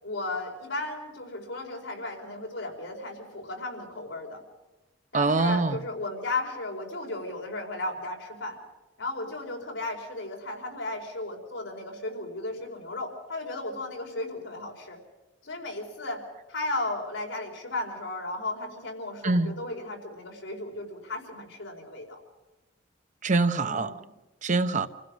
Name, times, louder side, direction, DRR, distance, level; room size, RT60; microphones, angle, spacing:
voice 1, 0.0-4.4 5.1-8.6 9.0-15.0 15.4-16.2 16.5-22.2 23.6-24.1, left 2 dB, 85° left, 4.9 m, -35 dB
voice 2, 5.1-5.8 19.2-19.5 23.2-23.9 24.4-24.9, right 3 dB, 40° right, 0.9 m, -24 dB
27.5 x 16.0 x 6.3 m
head